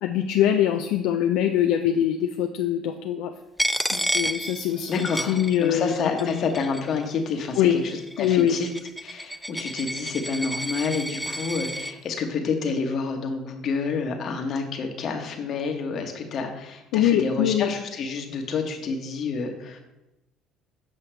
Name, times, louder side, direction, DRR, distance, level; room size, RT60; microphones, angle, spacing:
voice 1, 0.0-3.3 3.9-6.3 7.6-7.8 8.2-8.6 16.9-17.7, left 10 dB, 75° left, 5 dB, 0.4 m, -23 dB
Coin (dropping), 3.6-5.9 6.2-7.0 7.7-11.9, equal, 5° right, 0.4 m, -31 dB
voice 2, 4.9-8.7 9.0-19.8, left 4 dB, 55° left, 4 dB, 1.2 m, -29 dB
7.7 x 5.4 x 3.3 m, 0.94 s
hypercardioid pair, 70°, 0 cm